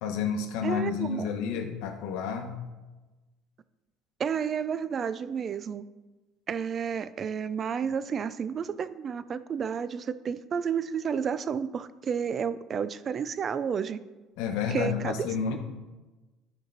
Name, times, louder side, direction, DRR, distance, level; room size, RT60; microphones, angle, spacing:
voice 1, 0.0-2.6 14.4-15.6, left 6 dB, 80° left, 4 dB, 1.1 m, -30 dB
voice 2, 0.6-1.2 4.2-5.8 6.5-14.0 14.7-15.1, right 7 dB, 25° right, 15 dB, 0.3 m, -31 dB
12.5 x 4.5 x 4.0 m, 1.2 s
cardioid pair, 170°, 0 cm